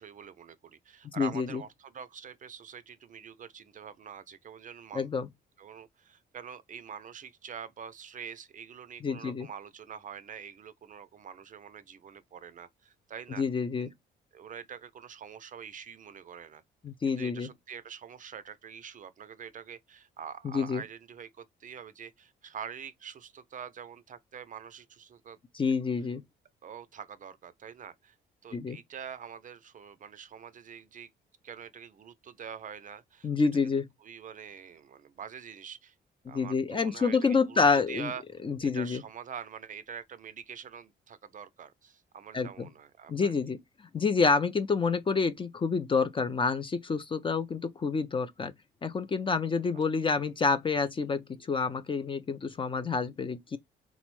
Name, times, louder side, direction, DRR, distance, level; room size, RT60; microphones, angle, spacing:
voice 1, 0.0-5.1 5.6-13.4 13.8-13.9 14.3-16.6 17.0-25.4 26.6-28.2 28.4-31.1 31.4-36.0 36.3-37.6 37.9-38.2 38.6-43.3 50.1-50.2, right 7 dB, 40° right, 0.4 m, -45 dB
voice 2, 1.0-1.6 4.9-5.3 9.0-9.5 13.4-13.9 16.8-17.5 20.4-20.8 25.5-26.2 28.5-28.8 33.2-33.9 36.3-38.1 38.4-39.0 42.3-42.7 43.1-43.6 43.9-48.5 48.8-53.6, left 4 dB, 25° left, 0.4 m, -28 dB
3.5 x 2.0 x 3.0 m
cardioid pair, 90°, 20 cm